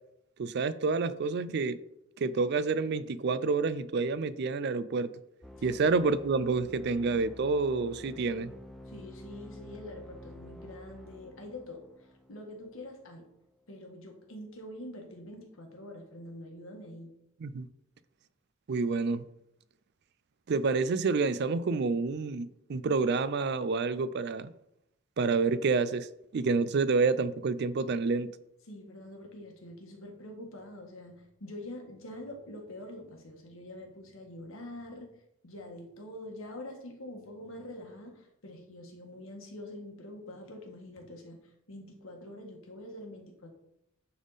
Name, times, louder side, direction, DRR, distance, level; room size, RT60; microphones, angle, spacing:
voice 1, 0.4-1.8 2.2-5.1 5.6-8.5 17.4-17.7 18.7-19.2 20.5-24.5 25.2-26.1 26.3-28.3, right 4 dB, 55° right, 0.4 m, -28 dB
sound 1, 5.4-12.9, left 1 dB, ahead, 0.5 m, -49 dB
voice 2, 8.9-13.3 13.7-17.1 28.7-35.1 35.4-41.4 41.7-43.5, left 1 dB, 85° left, 1.5 m, -45 dB
9.5 x 3.6 x 4.1 m
head